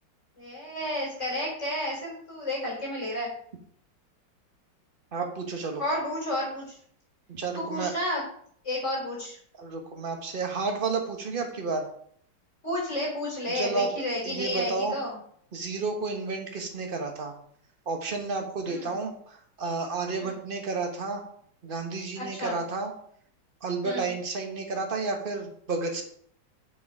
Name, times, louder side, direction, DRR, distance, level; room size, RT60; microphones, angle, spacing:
voice 1, 0.4-3.3 5.8-6.7 7.5-8.2 8.6-9.4 12.6-15.2 18.6-19.0 20.2-20.3 22.2-22.6 23.8-24.1, left 1 dB, 40° left, -4 dB, 4.4 m, -31 dB
voice 2, 5.1-5.8 7.3-7.9 9.6-11.8 13.5-13.9 14.2-15.0 15.5-17.3 17.8-21.2 21.6-22.9 23.6-26.0, right 4 dB, 30° right, 3 dB, 1.3 m, -31 dB
6.8 x 6.5 x 4.8 m, 0.62 s
omnidirectional pair, 2.0 m